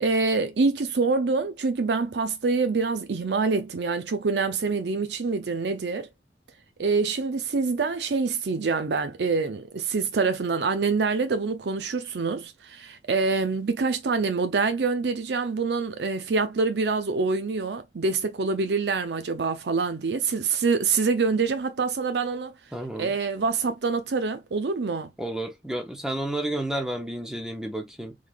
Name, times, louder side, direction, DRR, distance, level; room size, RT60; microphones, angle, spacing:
voice 1, 0.0-6.1 6.8-22.5 23.0-25.1, right 4 dB, 70° right, 0.5 m, -26 dB
voice 2, 22.7-23.1 25.2-28.2, right 1 dB, 5° right, 0.7 m, -31 dB
3.8 x 3.3 x 2.3 m
head